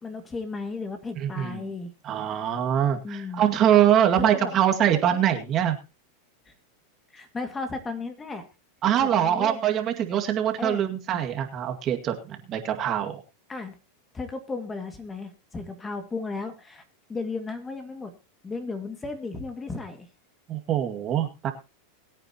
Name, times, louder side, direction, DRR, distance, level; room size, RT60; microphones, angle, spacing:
voice 1, 0.0-1.9 3.0-3.4 4.2-4.5 5.1-5.2 6.5-6.6 7.1-8.4 9.0-9.6 10.6-10.9 13.5-13.8 14.1-16.8 17.1-18.1 18.4-20.1, left 3 dB, 15° left, 8 dB, 2.1 m, -34 dB
voice 2, 1.2-1.6 2.0-5.8 8.8-13.2 20.5-21.5, right 10 dB, 35° right, 5 dB, 2.1 m, -23 dB
22.0 x 9.1 x 2.9 m, 0.28 s
supercardioid pair, 125°, 0 cm